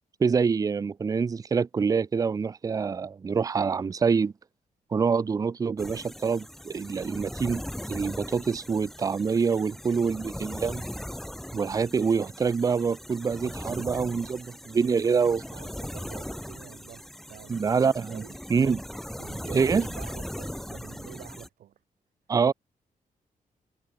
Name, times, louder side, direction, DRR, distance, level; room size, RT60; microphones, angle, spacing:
voice 1, 0.2-4.3 4.9-7.6 7.9-10.9 11.5-15.4 17.5-18.2 18.5-18.8 19.4-19.9 22.3-22.5, right 5 dB, 25° right, 0.5 m, -26 dB
sound 1, 5.8-21.5, equal, ahead, 4.6 m, -39 dB
voice 2, 14.8-17.7 18.1-18.4 19.2-21.7, right 11 dB, 80° right, 3.2 m, -48 dB
wide cardioid pair, 145°, 14 cm